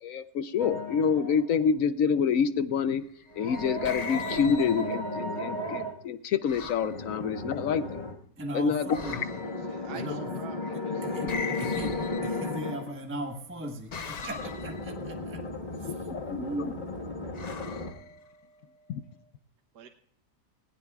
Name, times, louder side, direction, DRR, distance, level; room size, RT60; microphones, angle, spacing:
voice 1, 0.0-3.0 3.4-8.1 8.5-9.0 11.2-11.3 15.9-16.8 18.9-19.0, left 6 dB, 65° left, 13 dB, 0.9 m, -27 dB
sound 1, 0.6-1.5 3.3-5.9 6.8-8.2 8.8-12.9 14.3-17.9, left 2 dB, 30° left, 1.5 m, -35 dB
sound 2, 3.2-5.2 6.5-7.0 8.9-9.7 11.3-12.7 13.9-14.9 17.3-18.5, left 5 dB, 50° left, 0.5 m, -40 dB
voice 2, 8.4-9.2 9.9-10.3 11.0-15.4 15.8-16.1 16.4-16.8, equal, 10° right, 3 dB, 1.1 m, -38 dB
voice 3, 9.7-11.0 11.5-11.7 19.7-19.9, right 6 dB, 75° right, 4 dB, 1.5 m, -46 dB
19.0 x 16.5 x 2.4 m, 0.65 s
omnidirectional pair, 1.8 m